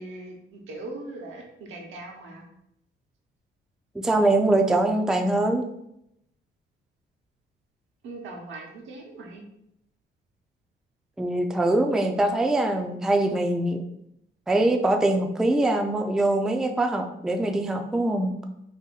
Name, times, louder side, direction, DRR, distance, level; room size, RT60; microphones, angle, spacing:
voice 1, 0.0-2.4 8.0-9.4, right 2 dB, 80° right, 0 dB, 0.9 m, -40 dB
voice 2, 4.0-5.7 11.2-13.8 14.5-18.3, right 2 dB, 5° right, 4 dB, 0.3 m, -23 dB
2.8 x 2.5 x 3.8 m, 0.77 s
cardioid pair, 90°, 20 cm